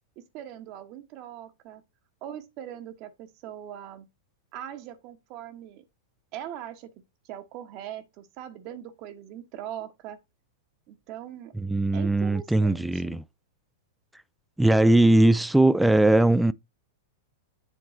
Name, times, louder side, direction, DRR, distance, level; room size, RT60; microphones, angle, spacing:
voice 1, 0.3-1.8 2.2-4.1 4.5-5.8 6.3-6.9 7.3-10.2 10.9-11.5 11.9-13.2, right 11 dB, 45° right, 1.1 m, -41 dB
voice 2, 11.6-13.2 14.6-16.5, right 1 dB, 5° right, 0.3 m, -20 dB
7.4 x 3.0 x 4.3 m
hypercardioid pair, 105°, 0 cm